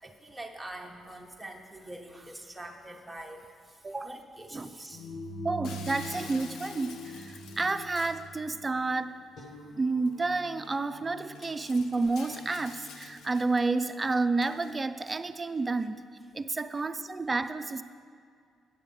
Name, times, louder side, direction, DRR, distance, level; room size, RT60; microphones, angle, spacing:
voice 1, 0.0-5.0, right 1 dB, 5° right, 1 dB, 1.0 m, -44 dB
sound 1, 4.9-14.8, equal, 50° left, 1.2 m, -45 dB
voice 2, 5.4-9.1 9.8-16.0 16.3-17.8, right 3 dB, 25° right, 10 dB, 0.4 m, -30 dB
Shatter, 5.6-8.3 10.1-10.2 10.6-10.8 11.3-13.6 14.4-14.7, left 5 dB, 80° left, 0.7 m, -48 dB
9.1 x 6.4 x 5.1 m, 2.2 s
cardioid pair, 90°, 0 cm